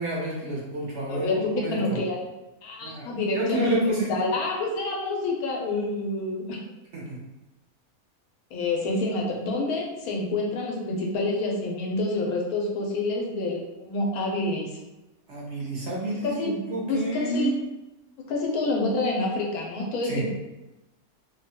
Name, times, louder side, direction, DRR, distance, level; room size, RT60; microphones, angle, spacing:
voice 1, 0.0-2.0 2.8-3.1 3.3-4.2 6.9-7.2 15.3-17.6 20.0-20.3, right 1 dB, 60° right, -4 dB, 0.8 m, -29 dB
voice 2, 1.1-2.2 2.6-3.7 4.1-6.6 8.5-14.7 16.2-16.5 16.9-17.5 18.3-20.3, left 2 dB, 90° left, -1 dB, 1.1 m, -27 dB
2.7 x 2.2 x 2.7 m, 1.0 s
omnidirectional pair, 1.5 m